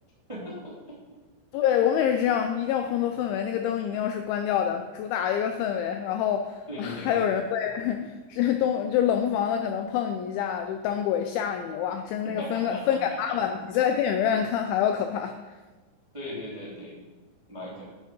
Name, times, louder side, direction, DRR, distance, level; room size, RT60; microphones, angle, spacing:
voice 1, 0.3-0.7 6.7-7.2 12.2-13.0 16.1-17.0 17.5-17.9, left 1 dB, 15° right, -6 dB, 1.3 m, -38 dB
voice 2, 1.5-15.4, left 9 dB, 85° left, 6 dB, 2.7 m, -26 dB
9.9 x 9.8 x 5.4 m, 1.3 s
omnidirectional pair, 6.0 m